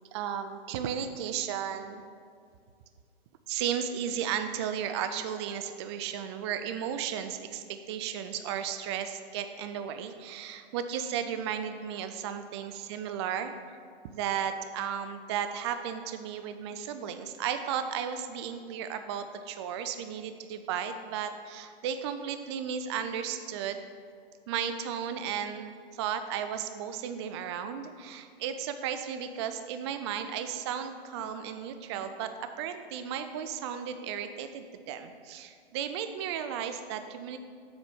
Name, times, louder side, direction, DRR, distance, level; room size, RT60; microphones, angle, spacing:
voice 1, 0.1-2.0 3.5-13.5 14.0-23.9 24.5-37.4, right 8 dB, 30° right, 9 dB, 0.4 m, -34 dB
7.6 x 4.3 x 6.9 m, 2.2 s
hypercardioid pair, 125°, 31 cm